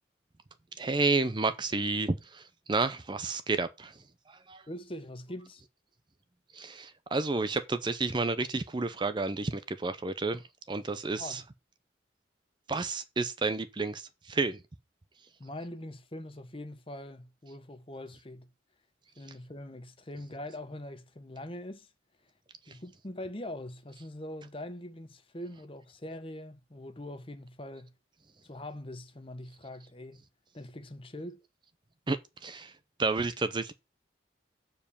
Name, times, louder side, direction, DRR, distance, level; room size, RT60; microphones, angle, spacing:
voice 1, 0.8-4.7 6.5-11.4 12.7-14.6 19.2-19.4 22.7-22.8 32.1-33.7, right 3 dB, 25° right, 0.5 m, -31 dB
voice 2, 4.7-5.6 11.2-11.4 15.4-18.5 19.2-21.9 22.2-22.3 22.7-27.9 28.4-30.2 30.5-31.4, left 1 dB, 30° left, 1.0 m, -43 dB
7.3 x 4.5 x 6.9 m
head